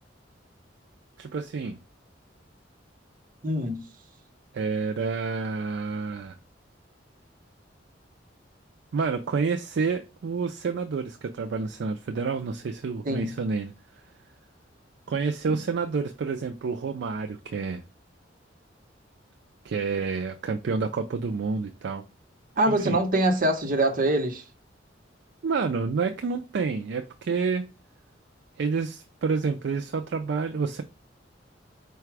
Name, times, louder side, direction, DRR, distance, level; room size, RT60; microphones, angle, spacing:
voice 1, 1.2-1.8 4.5-6.4 8.9-13.7 15.1-17.8 19.6-22.0 22.7-23.0 25.4-27.6 28.6-30.8, right 4 dB, 65° right, 0.4 m, -29 dB
voice 2, 3.4-3.8 13.0-13.4 22.6-24.4, right 1 dB, 50° right, 0.9 m, -24 dB
4.8 x 2.3 x 4.6 m
head